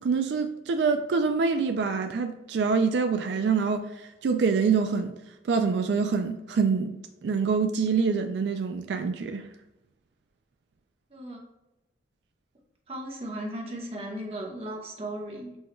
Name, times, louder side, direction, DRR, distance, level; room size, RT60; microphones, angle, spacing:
voice 1, 0.0-5.1 5.5-6.9 7.2-9.5, right 5 dB, 80° right, 0.3 m, -25 dB
voice 2, 12.9-15.6, right 1 dB, 35° right, 1.0 m, -36 dB
6.2 x 2.3 x 3.1 m
head